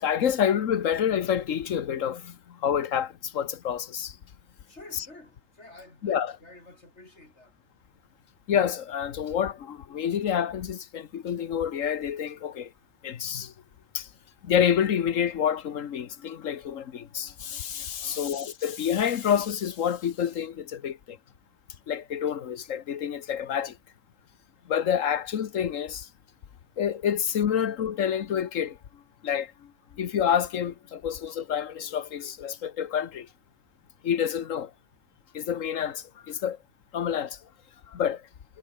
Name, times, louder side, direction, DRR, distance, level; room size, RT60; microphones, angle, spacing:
voice 1, 0.0-4.2 6.0-6.3 8.5-12.7 13.0-13.5 13.9-14.1 14.4-21.2 21.9-23.8 24.7-26.1 26.8-28.8 29.2-33.3 34.0-34.7 35.3-36.6 36.9-37.4 37.9-38.2, left 8 dB, 85° left, 1.4 m, -28 dB
voice 2, 4.6-7.6 11.1-11.3 12.7-12.9 18.0-18.4 23.1-23.5, left 2 dB, 60° left, 6.9 m, -51 dB
omnidirectional pair, 1.3 m